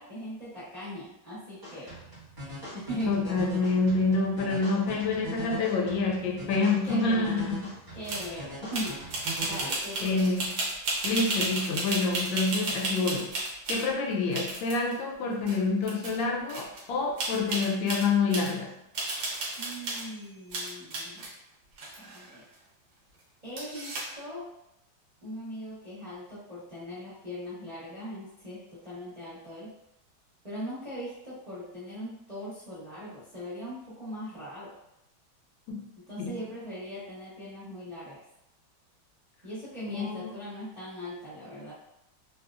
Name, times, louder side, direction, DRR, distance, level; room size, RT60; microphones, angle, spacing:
voice 1, 0.0-2.0 2.7-3.3 6.8-7.5 7.9-10.2 19.6-21.3 22.0-22.4 23.4-24.5 25.2-29.7 30.4-34.7 36.0-38.2 39.4-41.7, equal, 80° right, -11 dB, 0.3 m, -40 dB
sound 1, 1.6-9.7, right 2 dB, 20° right, 0.7 m, -41 dB
voice 2, 3.1-7.7 10.0-10.5 11.0-13.3 13.7-18.7 35.7-35.8 36.2-36.4 39.9-40.3, left 3 dB, 80° left, 0 dB, 1.3 m, -27 dB
sound 2, 8.0-8.3 8.7-13.8 14.3-14.9 15.5-15.6 15.8-16.2 16.5-16.8 17.2-18.5 18.9-20.1 20.5-21.3 21.8-22.5 23.6-24.2, right 2 dB, 60° right, 1.1 m, -33 dB
4.0 x 2.0 x 2.3 m, 0.82 s
omnidirectional pair, 2.2 m